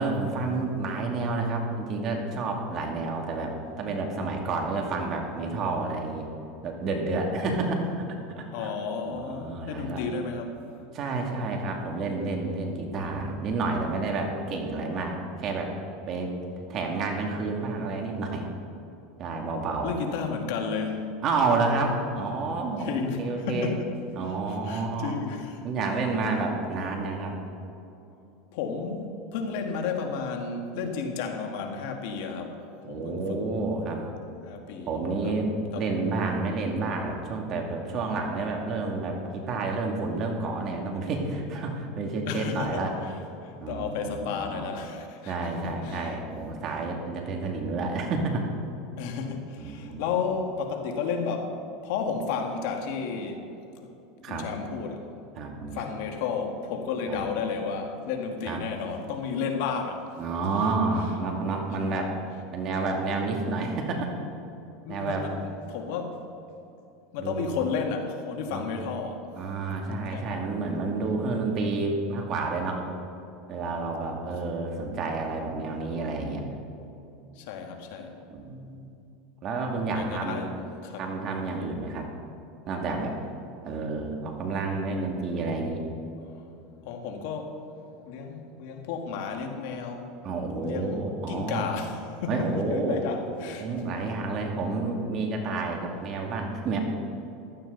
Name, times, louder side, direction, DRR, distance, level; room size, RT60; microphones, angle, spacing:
voice 1, 0.0-6.3 6.6-8.1 8.4-8.7 9.1-10.0 10.9-15.7 16.1-16.3 16.7-18.5 19.2-19.9 21.2-23.7 24.2-25.1 25.6-27.4 32.8-34.1 34.9-35.5 35.8-42.9 43.6-44.6 45.3-48.4 49.6-50.0 54.2-54.5 55.4-55.8 57.1-57.2 58.5-58.6 60.2-62.1 62.5-64.1 64.9-65.3 67.2-67.4 68.5-68.6 69.4-72.8 73.5-76.5 78.3-78.8 79.4-80.5 81.0-82.1 82.7-83.1 83.6-85.8 90.2-91.7 92.3-93.1 93.6-96.8, right 3 dB, 45° right, 2 dB, 2.4 m, -30 dB
voice 2, 8.5-10.7 19.8-21.2 22.8-23.9 24.2-25.6 28.5-33.5 34.4-35.4 35.7-35.9 42.3-43.1 43.4-46.2 49.0-53.4 53.8-53.9 54.3-55.2 55.7-60.2 60.6-60.7 64.9-66.3 67.1-69.3 70.1-70.4 77.4-78.2 79.9-81.1 86.3-86.5 86.8-90.2 90.6-93.7, left 5 dB, 70° left, 4 dB, 1.8 m, -33 dB
15.5 x 12.5 x 4.0 m, 2.8 s
supercardioid pair, 120°, 0 cm